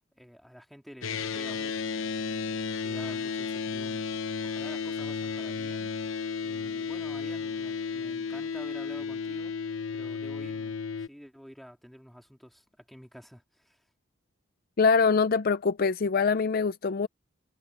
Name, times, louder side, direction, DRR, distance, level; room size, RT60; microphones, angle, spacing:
voice 1, 0.1-5.9 6.4-9.6 9.9-13.8, equal, ahead, 3.1 m, -50 dB
sound 1, 1.0-11.1, left 5 dB, 80° left, 0.9 m, -33 dB
voice 2, 14.8-17.1, left 5 dB, 45° left, 0.5 m, -24 dB
head